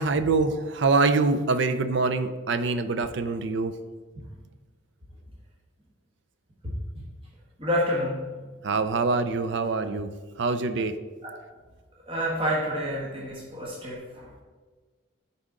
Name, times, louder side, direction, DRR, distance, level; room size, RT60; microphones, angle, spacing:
voice 1, 0.0-3.7 8.6-10.1 10.4-10.9, right 3 dB, 60° right, 9 dB, 0.5 m, -24 dB
voice 2, 7.6-8.3 11.2-11.3 12.1-14.3, equal, 25° right, -4 dB, 1.3 m, -28 dB
10.0 x 4.2 x 3.7 m, 1.4 s
head